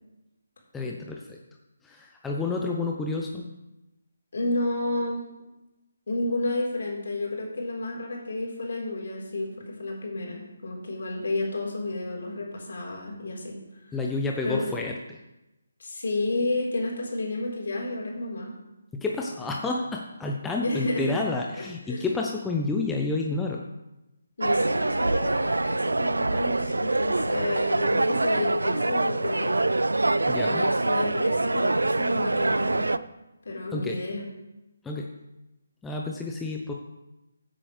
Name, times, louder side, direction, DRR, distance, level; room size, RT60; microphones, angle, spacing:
voice 1, 0.7-1.4 1.8-3.5 13.9-15.2 18.9-23.6 30.3-30.6 33.7-34.0 34.8-35.1 35.8-36.7, left 3 dB, 5° left, -1 dB, 0.8 m, -30 dB
voice 2, 4.3-5.2 6.1-13.6 13.9-14.0 14.4-14.6 15.8-18.5 20.6-21.2 21.5-22.1 24.4-29.6 30.0-32.9 33.4-34.2, left 2 dB, 65° left, -1 dB, 4.0 m, -31 dB
sound 1, 24.4-33.0, right 2 dB, 85° right, 0.4 m, -25 dB
15.5 x 7.9 x 3.3 m, 0.96 s
figure-of-eight pair, 150°, 0 cm